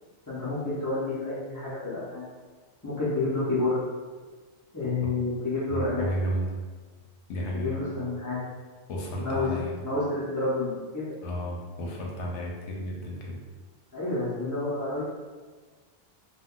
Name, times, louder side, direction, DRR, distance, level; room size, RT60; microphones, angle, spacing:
voice 1, 0.3-2.2 2.8-3.8 4.7-6.1 7.5-8.4 9.2-9.5 9.8-11.1 13.9-15.0, left 2 dB, 20° left, -11 dB, 0.5 m, -29 dB
voice 2, 5.7-6.6 7.3-7.9 8.9-9.8 11.2-13.4, equal, 80° left, -1 dB, 0.9 m, -32 dB
2.2 x 2.2 x 3.6 m, 1.4 s
omnidirectional pair, 1.2 m